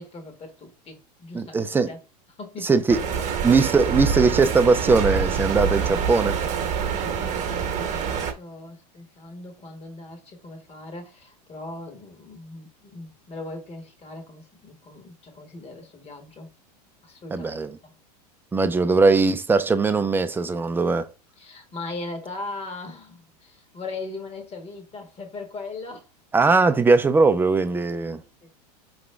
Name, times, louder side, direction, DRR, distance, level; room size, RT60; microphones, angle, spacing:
voice 1, 0.0-2.0 2.4-3.3 6.8-16.5 17.0-17.6 17.8-17.9 21.4-26.1 28.4-28.7, left 3 dB, 30° left, 1.6 m, -39 dB
voice 2, 1.3-1.9 2.6-3.0 3.4-6.4 17.3-17.7 18.5-21.1 26.3-28.2, right 4 dB, 10° right, 0.5 m, -20 dB
sound 1, 2.9-8.3, right 7 dB, 35° right, 1.2 m, -26 dB
4.8 x 3.1 x 3.3 m
hypercardioid pair, 100°, 21 cm